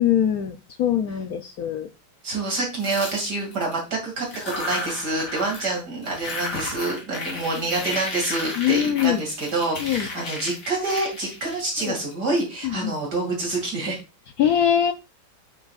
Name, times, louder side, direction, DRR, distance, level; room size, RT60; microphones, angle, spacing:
voice 1, 0.0-1.9 8.6-9.2 9.8-10.1 11.8-11.9 12.6-12.9 14.4-14.9, left 10 dB, 75° left, 7 dB, 0.8 m, -22 dB
voice 2, 2.2-14.0, right 2 dB, 50° right, 0 dB, 2.9 m, -27 dB
sound 1, 2.8-3.8 4.2-5.8 6.0-12.4, left 2 dB, 50° left, 3.2 m, -33 dB
8.8 x 7.9 x 2.4 m, 0.27 s
omnidirectional pair, 2.3 m